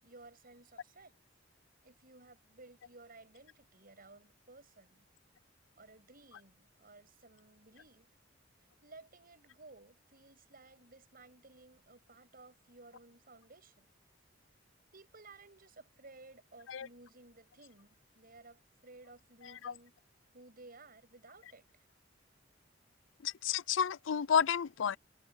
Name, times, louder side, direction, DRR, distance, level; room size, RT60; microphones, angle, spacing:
voice 1, 0.0-1.2 1.8-5.1 5.8-8.1 8.8-13.9 14.9-19.9 20.3-21.8, right 3 dB, 50° right, 7.6 m, -57 dB
voice 2, 23.2-25.0, left 7 dB, 80° left, 0.5 m, -31 dB
head